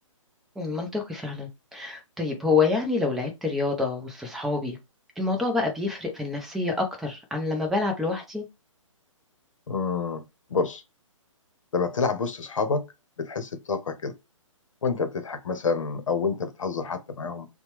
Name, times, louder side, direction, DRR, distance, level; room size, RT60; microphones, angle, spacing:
voice 1, 0.6-4.8 5.2-8.4, left 3 dB, ahead, 0.5 m, -27 dB
voice 2, 9.7-10.2 10.5-10.8 11.7-12.8 13.2-14.1 14.8-17.5, left 5 dB, 70° left, 0.8 m, -28 dB
2.8 x 2.2 x 3.0 m
hypercardioid pair, 140°, 17 cm